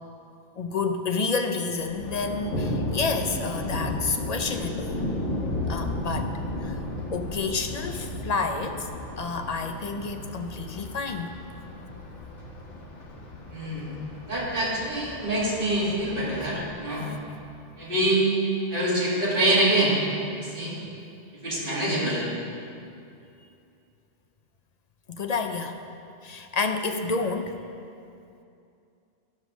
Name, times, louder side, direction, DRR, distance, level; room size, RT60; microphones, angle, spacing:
voice 1, 0.6-5.0 5.7-6.3 6.6-6.8 7.1-8.9 9.2-11.3 25.1-25.8 26.2-27.6, left 4 dB, 45° left, 6 dB, 0.6 m, -29 dB
Thunder, 1.8-17.7, left 1 dB, 85° left, 1.6 m, -34 dB
voice 2, 13.5-14.0 14.3-17.1 17.8-18.3 18.7-20.0 20.3-20.8 21.4-22.2, right 1 dB, 50° right, -7 dB, 2.5 m, -25 dB
13.0 x 5.4 x 6.1 m, 2.6 s
omnidirectional pair, 1.2 m